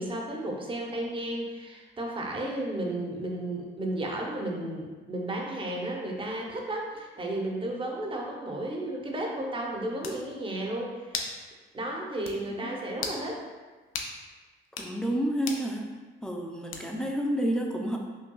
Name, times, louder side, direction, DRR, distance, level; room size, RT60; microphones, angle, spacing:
voice 1, 0.0-11.3 11.7-13.4, right 1 dB, 25° right, 0 dB, 0.7 m, -33 dB
sound 1, 9.6-9.7 10.0-10.2 11.1-11.4 11.8-11.9 12.2-12.4 12.9-13.2 13.9-14.1 14.6-14.9 15.5-15.7 16.7-17.1, left 5 dB, 80° left, 0.5 m, -35 dB
voice 2, 14.8-15.8 16.2-18.0, equal, 5° left, 0 dB, 0.4 m, -29 dB
5.5 x 2.2 x 2.3 m, 1.3 s
cardioid pair, 90°, 20 cm